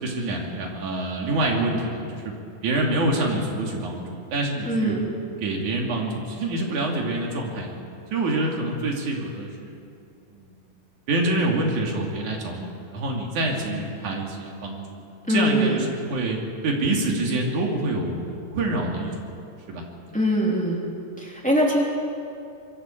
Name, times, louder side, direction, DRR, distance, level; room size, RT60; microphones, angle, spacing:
voice 1, 0.0-2.3 2.6-5.0 5.4-7.7 8.1-9.8 10.3-10.5 11.1-15.0 15.3-18.2 18.5-19.4 19.7-19.8, right 2 dB, 70° right, 0 dB, 4.0 m, -26 dB
voice 2, 4.6-5.0 15.3-15.8 20.1-20.8 21.2-21.8, equal, ahead, -3 dB, 2.7 m, -22 dB
25.0 x 23.0 x 4.6 m, 2.5 s
omnidirectional pair, 3.7 m